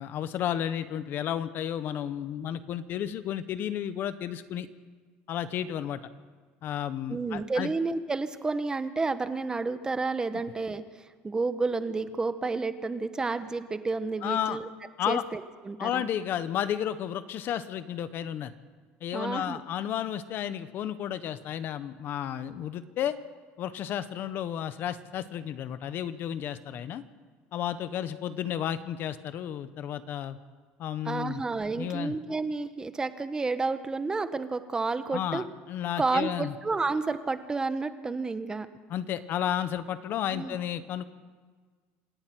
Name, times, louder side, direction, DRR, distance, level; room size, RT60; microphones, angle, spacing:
voice 1, 0.0-4.7 5.3-6.0 6.6-7.7 14.2-14.6 15.0-15.3 15.8-18.5 19.0-23.2 23.6-27.0 27.5-30.4 30.8-31.4 31.7-32.1 35.1-36.5 38.9-41.0, left 10 dB, 50° left, 13 dB, 1.1 m, -32 dB
voice 2, 7.1-14.7 15.1-16.1 19.1-19.6 31.0-35.4 36.0-38.7 40.3-40.6, right 3 dB, 15° right, 11 dB, 1.1 m, -30 dB
26.5 x 10.5 x 9.4 m, 1.5 s
cardioid pair, 125°, 5 cm